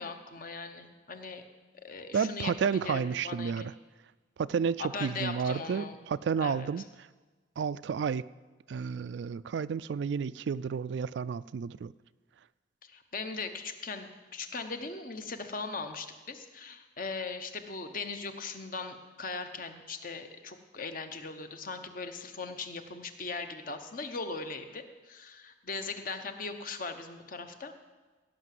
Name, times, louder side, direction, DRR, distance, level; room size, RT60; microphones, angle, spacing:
voice 1, 0.0-1.4 1.8-3.7 4.8-6.0 6.4-6.7 12.8-27.7, left 4 dB, 45° left, 7 dB, 1.0 m, -39 dB
voice 2, 2.1-3.7 4.4-6.8 7.6-8.3 8.7-11.9, right 6 dB, 65° right, 17 dB, 0.3 m, -31 dB
17.0 x 5.9 x 7.6 m, 1.3 s
head